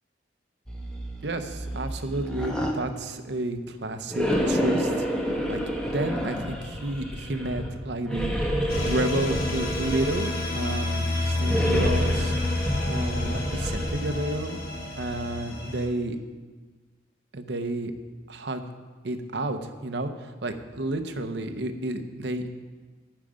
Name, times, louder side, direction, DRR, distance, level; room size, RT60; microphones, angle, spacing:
sound 1, 0.7-2.7 4.1-7.7 8.1-10.4 11.4-14.2, equal, 5° left, 1.1 m, -29 dB
voice 1, 1.2-5.1 5.5-8.4 8.6-14.6 15.0-16.2 17.3-17.9 18.3-18.6 19.0-22.5, right 2 dB, 65° right, 7 dB, 0.8 m, -31 dB
sound 2, 8.7-15.9, left 2 dB, 55° left, 1.3 m, -29 dB
9.9 x 9.0 x 5.1 m, 1.4 s
head